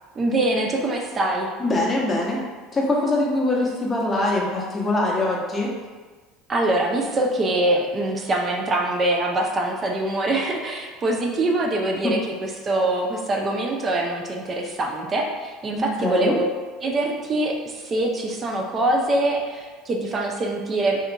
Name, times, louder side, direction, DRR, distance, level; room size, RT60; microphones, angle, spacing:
voice 1, 0.2-1.5 6.5-12.2 12.6-16.4 16.8-21.0, right 2 dB, 30° right, 1 dB, 0.4 m, -24 dB
voice 2, 1.6-2.4 2.7-5.7 12.0-12.1 15.8-16.3, left 2 dB, 20° left, -3 dB, 0.7 m, -23 dB
2.7 x 2.5 x 2.2 m, 1.4 s
supercardioid pair, 90°, 0 cm